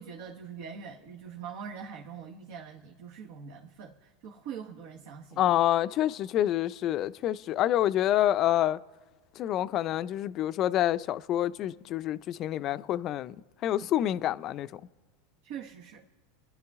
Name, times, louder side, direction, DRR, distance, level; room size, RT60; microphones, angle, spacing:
voice 1, 0.0-5.5 15.4-16.0, right 7 dB, 65° right, 1.2 m, -43 dB
voice 2, 5.4-8.8 9.4-13.4 13.6-14.8, left 12 dB, 45° left, 0.4 m, -27 dB
27.5 x 11.0 x 3.6 m
hypercardioid pair, 100°, 0 cm